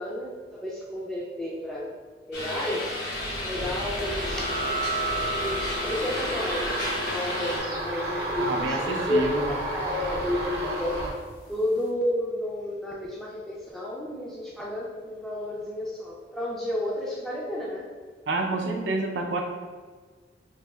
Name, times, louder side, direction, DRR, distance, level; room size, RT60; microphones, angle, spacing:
voice 1, 0.0-1.9 2.3-4.5 5.3-11.1 11.5-17.9, left 1 dB, ahead, -5 dB, 0.3 m, -31 dB
sound 1, 2.3-7.6, left 1 dB, 70° left, 0.9 m, -33 dB
sound 2, 3.1-11.1, right 1 dB, 60° right, 0.7 m, -33 dB
sound 3, 4.0-11.2, right 1 dB, 50° left, 0.6 m, -35 dB
voice 2, 8.4-9.6 18.3-19.4, right 2 dB, 90° right, 2 dB, 0.5 m, -28 dB
4.0 x 2.7 x 2.2 m, 1.5 s
head